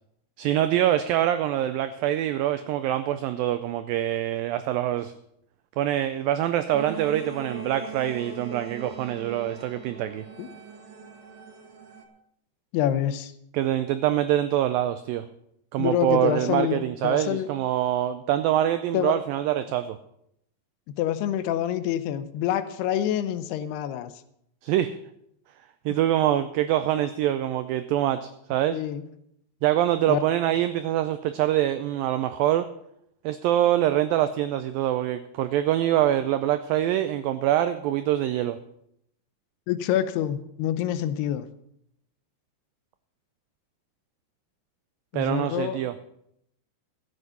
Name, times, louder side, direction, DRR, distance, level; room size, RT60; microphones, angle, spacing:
voice 1, 0.4-5.1 5.8-10.2 13.5-15.3 15.7-20.0 24.6-25.0 25.9-28.8 29.6-32.7 33.2-38.6 45.1-45.9, right 12 dB, 90° right, 11 dB, 2.0 m, -25 dB
sound 1, 6.7-12.1, right 5 dB, 60° right, 2.1 m, -40 dB
voice 2, 12.7-13.3 15.8-17.5 18.9-19.1 20.9-24.1 25.9-26.0 28.7-29.1 30.1-30.2 39.7-41.5 45.1-45.8, left 11 dB, 80° left, 12 dB, 2.7 m, -27 dB
14.5 x 8.1 x 5.7 m, 0.75 s
omnidirectional pair, 4.7 m